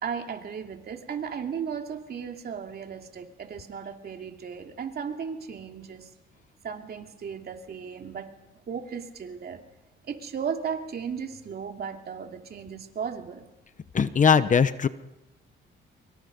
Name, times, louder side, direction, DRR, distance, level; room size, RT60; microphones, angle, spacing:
voice 1, 0.0-6.1 6.6-8.3 8.7-9.6 10.1-13.5, right 7 dB, 50° right, 4 dB, 2.7 m, -35 dB
voice 2, 13.9-14.9, left 6 dB, 40° left, 13 dB, 1.0 m, -20 dB
25.5 x 23.0 x 5.3 m, 1.0 s
cardioid pair, 90°, 20 cm